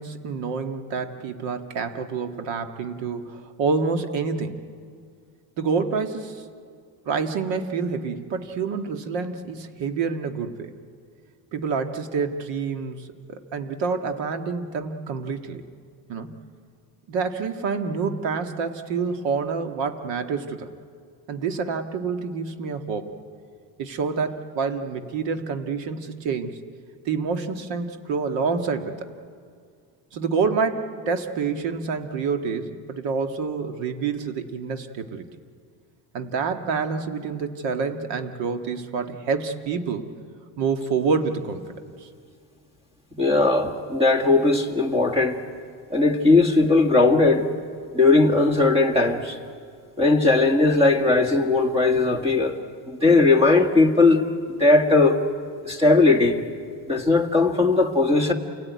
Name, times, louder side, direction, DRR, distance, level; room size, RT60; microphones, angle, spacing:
voice 1, 0.0-4.6 5.6-6.4 7.1-10.7 11.5-15.6 16.1-16.3 17.1-20.7 21.3-23.1 23.8-26.6 27.1-29.1 30.1-35.2 36.1-40.1 40.6-41.6 42.0-42.1, right 5 dB, 75° right, 6 dB, 1.9 m, -27 dB
voice 2, 43.2-45.4 45.9-47.5 47.9-49.4 50.0-52.5 52.9-54.2 54.6-55.2 55.6-56.4 56.9-58.3, left 3 dB, 15° right, 5 dB, 1.9 m, -18 dB
28.0 x 18.0 x 9.5 m, 2.1 s
cardioid pair, 155°, 44 cm